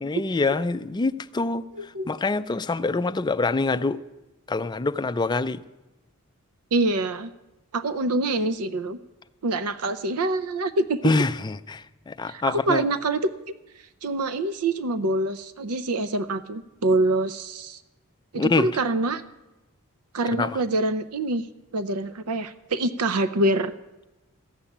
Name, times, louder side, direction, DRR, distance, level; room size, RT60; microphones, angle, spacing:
voice 1, 0.0-1.7 2.1-4.0 4.5-5.6 11.0-12.8 18.4-18.7 20.4-20.5, left 3 dB, 20° left, 0.4 m, -25 dB
voice 2, 1.8-2.1 6.7-7.3 7.7-9.0 9.4-11.0 12.3-13.5 14.0-17.8 18.3-19.2 20.1-21.5 21.7-23.7, right 2 dB, 85° right, 0.6 m, -25 dB
14.5 x 7.1 x 9.9 m
head